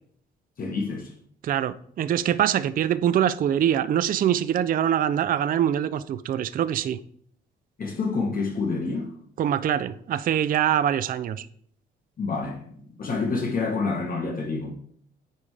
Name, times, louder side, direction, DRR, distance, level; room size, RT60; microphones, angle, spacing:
voice 1, 0.6-1.1 7.8-9.1 12.2-14.7, left 4 dB, 45° left, 1.3 m, -28 dB
voice 2, 1.4-7.0 9.4-11.5, right 10 dB, 45° right, 0.4 m, -24 dB
9.7 x 3.5 x 3.3 m
cardioid pair, 90°, 20 cm